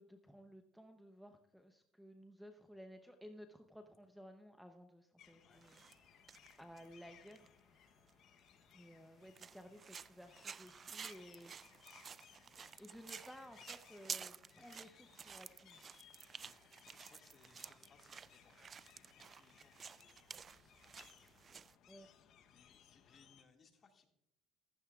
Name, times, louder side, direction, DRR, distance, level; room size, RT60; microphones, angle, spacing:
voice 1, 0.0-5.8 6.6-7.5 8.7-11.5 12.8-15.9 21.9-22.1, equal, ahead, 6 dB, 0.8 m, -56 dB
sound 1, 5.2-23.4, left 9 dB, 60° left, 0.9 m, -65 dB
sound 2, 5.5-6.0 6.3-7.5 8.1-8.2 8.7-8.8 9.4-21.8, right 6 dB, 35° right, 0.3 m, -52 dB
voice 2, 16.4-21.4 21.8-24.1, left 5 dB, 35° left, 3 dB, 2.0 m, -70 dB
15.0 x 14.5 x 2.4 m, 0.80 s
cardioid pair, 115°, 0 cm